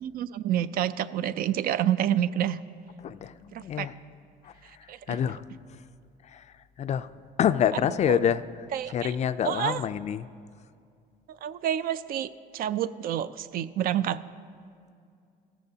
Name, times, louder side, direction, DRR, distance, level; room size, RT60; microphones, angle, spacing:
voice 1, 0.0-2.6 3.5-3.9 4.9-5.2 8.1-8.2 8.7-9.1 9.4-9.8 11.3-14.2, right 10 dB, 60° right, 14 dB, 0.4 m, -28 dB
voice 2, 3.0-4.0 4.4-4.5 5.1-5.4 5.7-5.8 6.3-6.4 6.8-7.1 7.4-8.4 8.9-10.3, left 9 dB, 40° left, 13 dB, 0.4 m, -27 dB
15.5 x 13.5 x 2.8 m, 2.3 s
cardioid pair, 110°, 17 cm